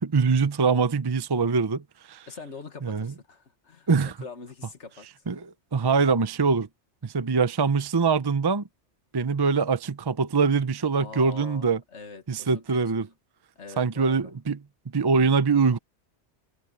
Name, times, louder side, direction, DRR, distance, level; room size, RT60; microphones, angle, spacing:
voice 1, 0.0-2.3 2.8-3.1 3.9-4.1 5.3-5.5 5.7-6.7 7.0-8.6 9.1-11.8 12.3-13.1 13.8-14.6 14.9-15.8, right 5 dB, 25° right, 0.6 m, -23 dB
voice 2, 2.3-3.9 4.2-5.4 11.0-13.0 13.6-14.3, left 4 dB, 75° left, 2.1 m, -44 dB
omnidirectional pair, 1.2 m